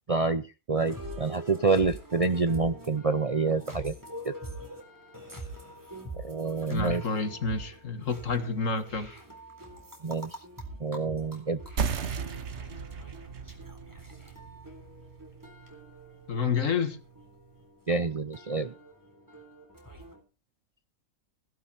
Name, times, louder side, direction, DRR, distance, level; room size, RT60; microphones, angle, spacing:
voice 1, 0.1-4.0 4.2-4.3 6.2-7.0 10.0-10.4 10.8-11.6 17.9-18.7, right 4 dB, 40° right, 0.5 m, -27 dB
sound 1, 0.8-20.2, right 1 dB, 15° right, 3.8 m, -45 dB
voice 2, 6.7-9.2 16.3-17.0, left 5 dB, 65° left, 2.0 m, -29 dB
sound 2, 11.8-16.9, right 6 dB, 55° right, 1.3 m, -36 dB
16.5 x 12.0 x 4.3 m
omnidirectional pair, 1.5 m